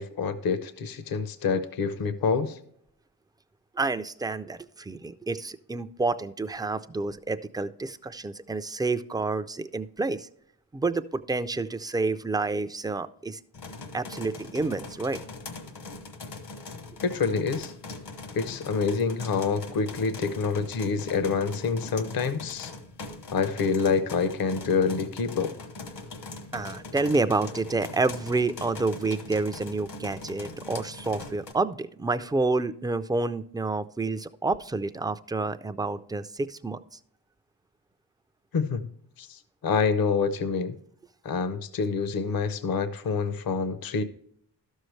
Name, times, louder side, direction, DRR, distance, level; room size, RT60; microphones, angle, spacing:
voice 1, 0.0-2.6 17.0-17.7 18.3-22.7 23.3-25.5 38.5-38.9 39.2-40.8 41.2-44.0, left 5 dB, 55° left, 12 dB, 0.7 m, -27 dB
voice 2, 3.7-10.3 10.7-13.4 13.9-15.2 26.5-37.0, right 3 dB, 10° right, 10 dB, 0.4 m, -29 dB
sound 1, 13.5-31.5, left 3 dB, 70° left, 1.3 m, -41 dB
12.0 x 6.5 x 3.1 m, 0.66 s
cardioid pair, 75°, 42 cm